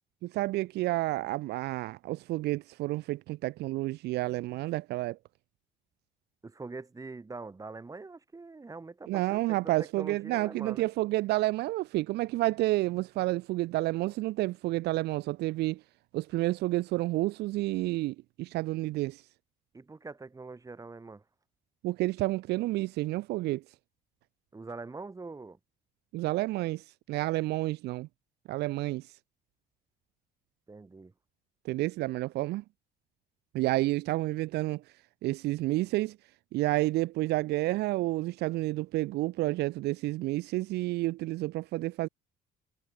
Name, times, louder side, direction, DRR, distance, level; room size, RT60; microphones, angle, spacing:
voice 1, 0.2-5.2 9.1-15.8 16.1-19.2 21.8-23.6 26.1-28.1 28.5-29.1 31.6-32.6 33.5-34.8 35.2-36.2 36.5-42.1, right 18 dB, 80° right, 0.6 m, -30 dB
voice 2, 6.4-10.9 19.7-21.2 24.5-25.6 30.7-31.1, right 3 dB, 20° right, 6.7 m, -43 dB
cardioid pair, 110°, 17 cm